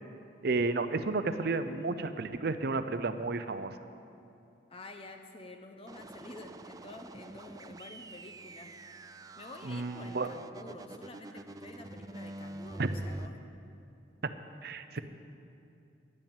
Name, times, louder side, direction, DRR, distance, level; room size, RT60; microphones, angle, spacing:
voice 1, 0.4-3.8 9.6-10.3 12.8-12.9 14.2-14.3 14.6-15.0, right 3 dB, 55° right, 11 dB, 0.6 m, -32 dB
voice 2, 4.7-8.8 9.4-13.4 14.9-15.0, left 2 dB, 30° left, 5 dB, 0.6 m, -49 dB
sound 1, 5.9-13.3, right 2 dB, 20° right, 0.3 m, -45 dB
10.5 x 8.7 x 8.8 m, 2.7 s
head